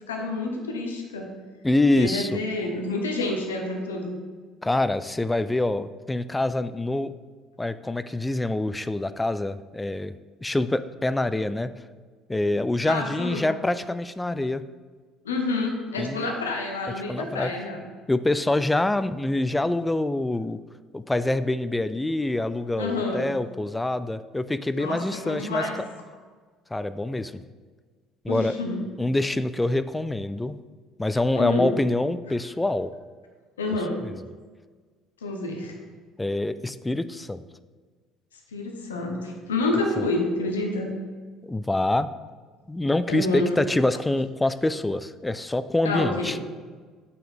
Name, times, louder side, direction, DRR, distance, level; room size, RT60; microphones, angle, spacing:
voice 1, 0.1-1.3 1.9-4.2 12.8-13.5 15.2-17.8 22.8-23.2 24.8-25.8 28.3-28.8 31.3-31.7 33.6-34.0 35.2-35.8 38.5-40.9 43.1-43.6 45.8-46.4, left 2 dB, 80° left, 2 dB, 0.9 m, -28 dB
voice 2, 1.6-2.4 4.6-7.1 7.6-10.1 10.4-11.7 12.3-14.6 16.0-16.3 17.1-17.5 18.1-20.6 20.9-25.6 26.7-27.4 28.2-28.5 29.0-30.5 31.0-32.9 34.0-34.1 36.2-37.4 40.0-40.1 41.4-42.1 42.7-46.4, left 2 dB, 10° left, 13 dB, 0.3 m, -25 dB
6.9 x 6.0 x 3.7 m, 1.5 s
figure-of-eight pair, 55°, 0 cm